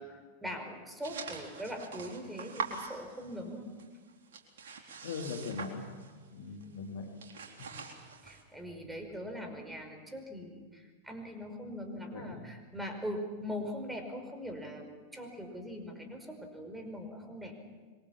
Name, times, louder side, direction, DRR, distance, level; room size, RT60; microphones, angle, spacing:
voice 1, 0.0-3.7 7.7-7.8 8.2-17.5, equal, 5° right, 5 dB, 5.2 m, -41 dB
sound 1, 1.0-3.5 3.8-6.3 6.6-6.8 7.1-8.4, right 5 dB, 60° right, 4.0 m, -43 dB
voice 2, 5.0-6.0 6.3-7.1 7.6-7.7 12.0-12.5, left 5 dB, 60° left, 2 dB, 3.0 m, -40 dB
26.5 x 23.5 x 7.2 m, 1.5 s
figure-of-eight pair, 90°, 0 cm